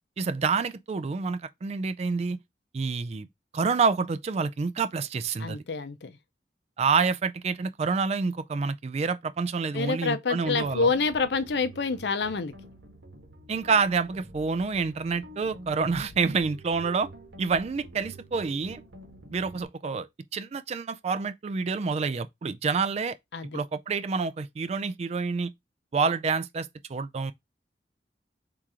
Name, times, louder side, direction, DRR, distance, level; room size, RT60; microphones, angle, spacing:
voice 1, 0.2-2.4 2.7-3.3 3.5-5.6 6.8-10.9 13.5-17.1 17.4-18.8 19.3-20.1 20.3-23.2 23.5-25.5 25.9-27.3, right 5 dB, 35° right, 0.3 m, -28 dB
voice 2, 5.4-6.2 9.7-12.5 23.3-23.6, left 4 dB, 70° left, 0.6 m, -27 dB
sound 1, 10.4-19.6, right 1 dB, 75° right, 1.2 m, -47 dB
3.7 x 2.9 x 4.7 m
head